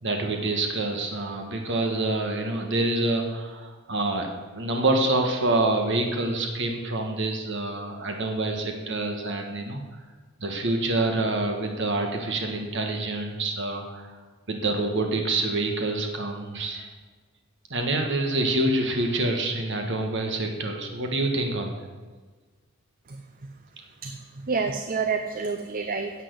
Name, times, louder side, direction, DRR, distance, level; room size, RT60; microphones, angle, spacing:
voice 1, 0.0-4.3 4.5-9.8 10.4-14.2 14.5-16.9 17.7-21.9, right 2 dB, 60° right, 3 dB, 1.5 m, -26 dB
voice 2, 24.0-26.1, right 5 dB, 45° right, 7 dB, 0.7 m, -29 dB
10.0 x 7.6 x 8.1 m, 1.4 s
head